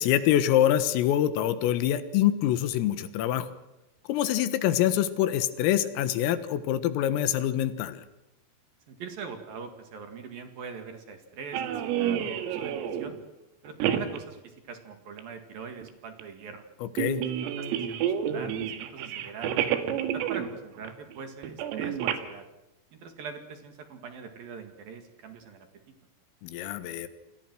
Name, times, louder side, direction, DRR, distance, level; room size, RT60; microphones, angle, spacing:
voice 1, 0.0-3.5 4.1-8.0 17.0-17.2 26.4-27.1, left 11 dB, 90° left, 12 dB, 4.1 m, -25 dB
voice 2, 8.9-13.1 13.6-16.6 17.4-22.4 22.9-25.7, right 5 dB, 55° right, 6 dB, 3.2 m, -42 dB
sound 1, 11.5-13.2 13.7-14.2 15.2-15.3 15.8-15.9 16.2-16.3 17.0-20.5 20.8-21.2 21.4-22.2, right 9 dB, 85° right, 4.4 m, -29 dB
28.5 x 21.5 x 6.2 m, 0.97 s
omnidirectional pair, 5.9 m